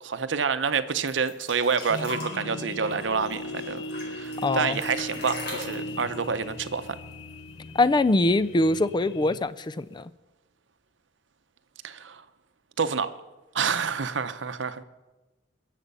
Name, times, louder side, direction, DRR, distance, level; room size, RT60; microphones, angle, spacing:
voice 1, 0.0-7.0 11.8-12.2 12.8-13.1 13.5-14.8, right 5 dB, 70° right, 0.7 m, -28 dB
sound 1, 1.1-7.5 7.8-7.9 8.2-8.9 9.7-9.8, left 2 dB, 60° left, 4.2 m, -40 dB
sound 2, 1.9-9.4, left 1 dB, 85° left, 0.9 m, -38 dB
voice 2, 4.4-4.8 7.8-10.1, left 2 dB, 25° left, 0.4 m, -23 dB
22.0 x 7.5 x 5.5 m
head